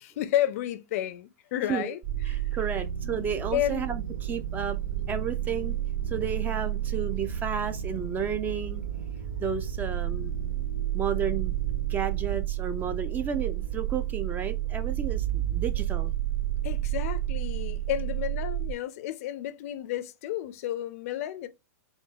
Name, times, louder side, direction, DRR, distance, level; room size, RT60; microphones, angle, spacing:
voice 1, 0.0-2.0 3.0-3.9 16.6-21.5, left 12 dB, 55° left, 0.4 m, -31 dB
sound 1, 2.0-18.7, right 11 dB, 50° right, 1.4 m, -31 dB
voice 2, 2.3-4.8 5.1-5.8 6.1-8.8 9.4-10.3 10.9-11.5 11.9-16.1, right 7 dB, 20° right, 0.4 m, -32 dB
3.8 x 2.1 x 2.3 m
hypercardioid pair, 120°, 10 cm